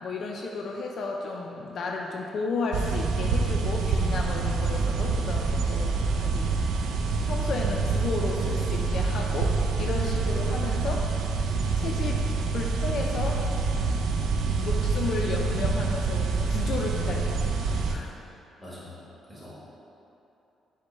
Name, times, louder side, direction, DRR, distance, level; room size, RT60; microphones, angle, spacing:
voice 1, 0.0-6.6 7.2-11.0 11.8-12.2 12.5-13.4 14.6-18.1, left 3 dB, 60° left, 0 dB, 0.3 m, -33 dB
Tape Hiss from Blank Tape - Dolby C-NR, 2.7-17.9, right 4 dB, 80° right, 0.3 m, -26 dB
voice 2, 18.6-19.6, left 1 dB, ahead, -8 dB, 1.4 m, -44 dB
4.9 x 2.1 x 4.3 m, 2.9 s
cardioid pair, 90°, 0 cm